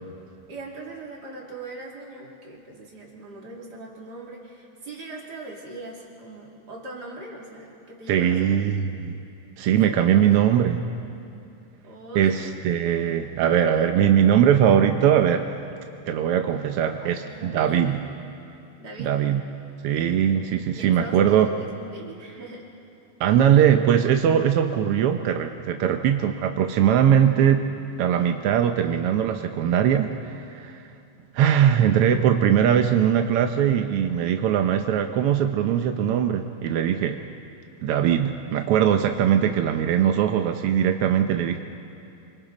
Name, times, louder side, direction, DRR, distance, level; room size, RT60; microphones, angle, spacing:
voice 1, 0.5-8.6 9.7-10.5 11.8-12.6 17.0-18.1 18.8-19.1 20.7-22.7, right 2 dB, 35° right, -3 dB, 3.1 m, -40 dB
voice 2, 8.1-9.2 9.6-10.8 12.1-15.5 16.1-18.0 19.0-19.4 19.8-21.5 23.2-27.7 28.0-30.8 31.3-37.2 37.8-41.6, right 9 dB, 75° right, 6 dB, 1.3 m, -21 dB
27.0 x 24.5 x 4.0 m, 2.7 s
omnidirectional pair, 3.4 m